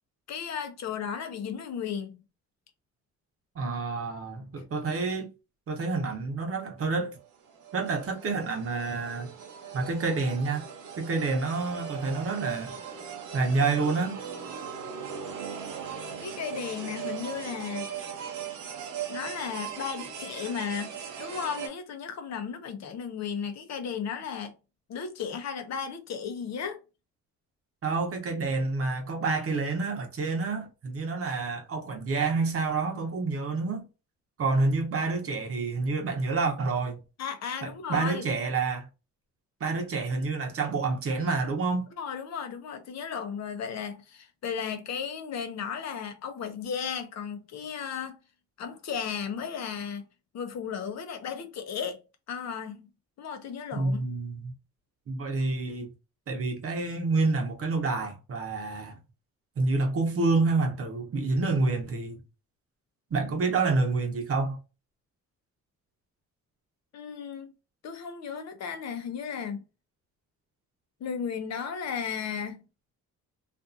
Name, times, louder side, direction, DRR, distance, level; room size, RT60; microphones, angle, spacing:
voice 1, 0.3-2.2 16.2-17.9 19.1-24.5 24.9-26.8 37.2-38.3 41.9-48.2 48.6-50.0 50.3-52.0 52.3-52.9 53.2-54.1 66.9-67.5 67.8-69.6 71.0-72.6, left 7 dB, 60° left, 0.7 m, -35 dB
voice 2, 3.5-5.3 5.7-7.2 7.7-9.3 9.7-10.7 11.0-12.7 13.3-14.2 27.8-33.9 34.4-37.0 37.6-38.9 39.6-41.9 53.7-54.5 55.1-55.9 56.3-59.0 59.6-62.2 63.1-64.6, right 3 dB, 50° right, 0.9 m, -28 dB
sound 1, 7.2-21.7, right 7 dB, 90° right, 0.8 m, -39 dB
2.5 x 2.5 x 2.5 m
cardioid pair, 90°, 30 cm